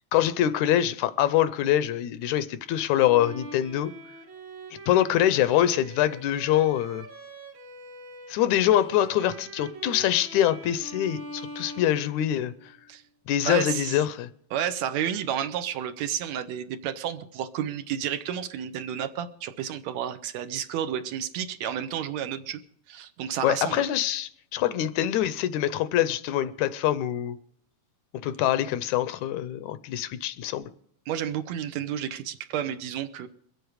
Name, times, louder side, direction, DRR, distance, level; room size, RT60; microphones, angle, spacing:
voice 1, 0.1-3.9 4.9-7.1 8.3-12.5 13.3-14.3 23.4-27.4 28.2-30.6, left 12 dB, 80° left, 2.0 m, -24 dB
Bowed string instrument, 2.9-12.7, right 2 dB, 45° right, 1.9 m, -43 dB
voice 2, 13.4-14.0 14.5-22.6 22.9-23.8 31.1-33.3, right 9 dB, 75° right, 1.9 m, -31 dB
23.0 x 8.0 x 4.9 m
omnidirectional pair, 3.4 m